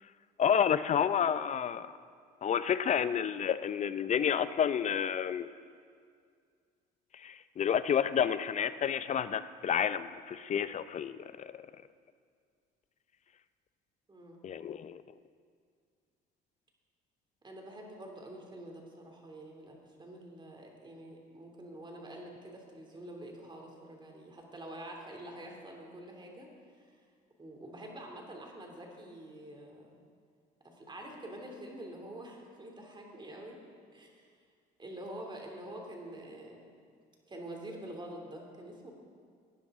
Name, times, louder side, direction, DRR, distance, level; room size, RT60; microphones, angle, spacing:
voice 1, 0.4-1.9 2.4-5.5 7.1-11.6 14.4-15.0, left 8 dB, 40° left, 14 dB, 0.5 m, -30 dB
voice 2, 14.1-14.4 17.4-27.0 27.4-30.0 30.6-33.6 33.9-34.3 34.8-36.7 37.3-38.9, right 1 dB, 25° right, 1 dB, 2.8 m, -47 dB
18.0 x 10.0 x 3.7 m, 2.1 s
supercardioid pair, 75°, 19 cm